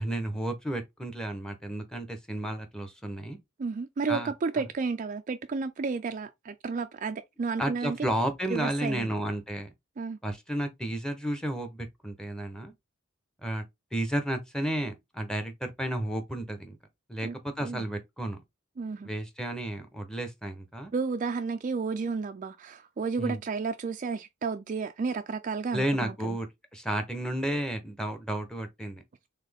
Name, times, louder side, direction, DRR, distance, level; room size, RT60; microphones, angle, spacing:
voice 1, 0.0-3.4 4.1-4.7 7.6-9.7 10.2-12.7 13.4-13.6 13.9-16.8 17.1-18.4 19.0-20.9 23.2-23.4 25.7-26.5 26.7-29.0, right 1 dB, 5° left, 0.8 m, -32 dB
voice 2, 3.6-8.0 8.5-9.1 10.0-10.2 17.2-17.4 17.6-17.8 18.8-19.1 20.9-26.4, right 4 dB, 40° right, 0.3 m, -32 dB
4.2 x 3.5 x 3.4 m
head